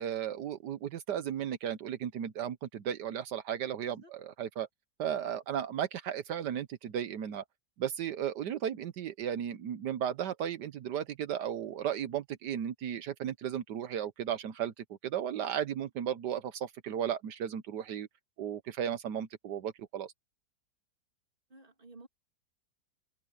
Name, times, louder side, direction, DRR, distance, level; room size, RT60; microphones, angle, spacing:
voice 1, 0.0-4.7 5.0-7.4 7.8-18.1 18.4-20.1, right 9 dB, 80° right, 1.5 m, -35 dB
voice 2, 21.5-22.1, right 2 dB, 30° right, 3.1 m, -53 dB
omnidirectional pair, 1.8 m